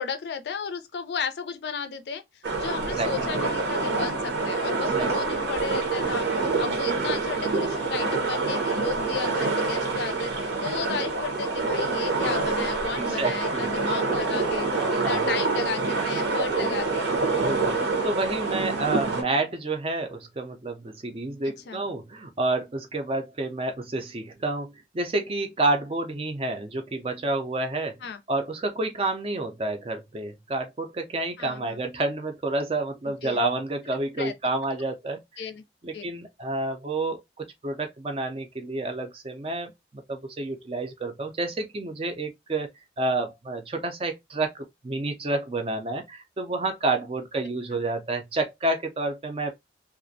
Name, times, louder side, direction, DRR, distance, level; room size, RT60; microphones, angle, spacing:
voice 1, 0.0-2.2 2.6-6.3 6.6-17.1 21.4-21.8 28.0-28.2 31.4-31.8 33.0-33.4 34.2-34.3 35.4-35.6 35.9-36.1, left 5 dB, 70° left, 0.4 m, -34 dB
sound 1, 2.4-19.2, right 3 dB, 75° right, 0.8 m, -26 dB
voice 2, 13.2-13.7 14.9-15.3 17.4-35.4 35.8-42.7 43.0-49.5, right 2 dB, 30° right, 0.4 m, -29 dB
2.4 x 2.1 x 2.6 m
head